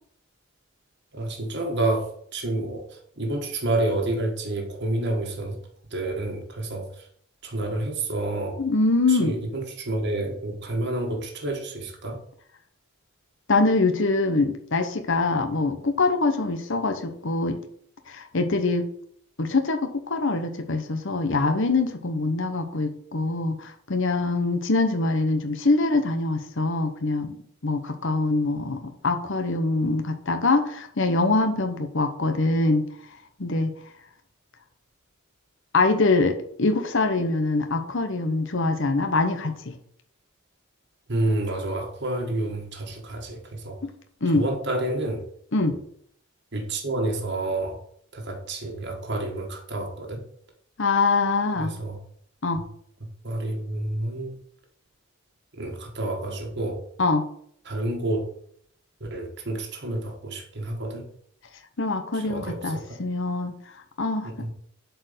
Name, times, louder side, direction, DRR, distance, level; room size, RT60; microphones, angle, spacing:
voice 1, 1.1-2.9 3.2-5.6 5.9-6.9 7.4-8.6 9.1-12.2 41.1-43.8 44.3-45.2 45.6-45.7 46.5-47.8 48.1-50.2 51.5-52.0 52.6-52.7 53.0-54.3 55.6-56.8 57.7-58.3 59.1-61.1 62.1-63.0 64.2-64.5, right 2 dB, 50° right, 1 dB, 1.6 m, -29 dB
voice 2, 8.6-9.3 13.5-17.6 18.1-18.9 19.4-27.3 27.6-32.8 33.4-33.7 35.7-39.8 43.8-43.9 44.2-44.5 45.5-45.8 50.8-51.8 52.4-52.6 57.0-57.2 61.8-63.6 64.0-64.5, left 3 dB, 55° left, 6 dB, 1.0 m, -24 dB
7.8 x 4.6 x 6.7 m, 0.64 s
head